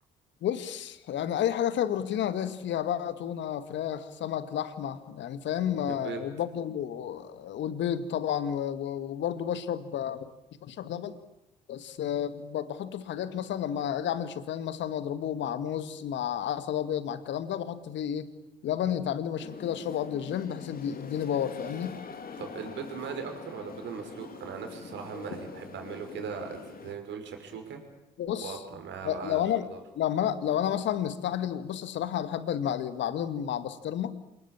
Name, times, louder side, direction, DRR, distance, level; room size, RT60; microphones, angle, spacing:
voice 1, 0.4-10.3 10.6-11.2 11.7-18.3 18.6-22.0 28.2-28.6 29.0-29.7 30.0-34.2, left 10 dB, 60° left, 13 dB, 2.0 m, -31 dB
sound 1, 19.4-26.9, left 5 dB, 45° left, 2.9 m, -44 dB
voice 2, 22.4-27.8 28.4-29.4 29.7-29.8, right 6 dB, 60° right, 5 dB, 5.6 m, -39 dB
27.5 x 19.5 x 8.9 m, 0.89 s
hypercardioid pair, 50°, 21 cm